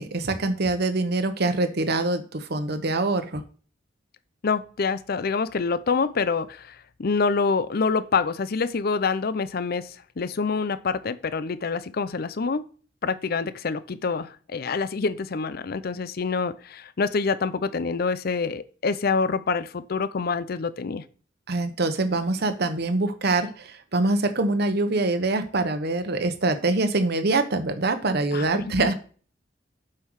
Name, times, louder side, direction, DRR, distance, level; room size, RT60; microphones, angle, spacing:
voice 1, 0.0-3.4 21.5-28.9, right 2 dB, 60° right, 9 dB, 1.0 m, -24 dB
voice 2, 4.4-12.7 13.0-21.0 28.3-28.9, left 4 dB, 55° left, 14 dB, 0.5 m, -26 dB
7.7 x 5.6 x 4.7 m, 0.40 s
head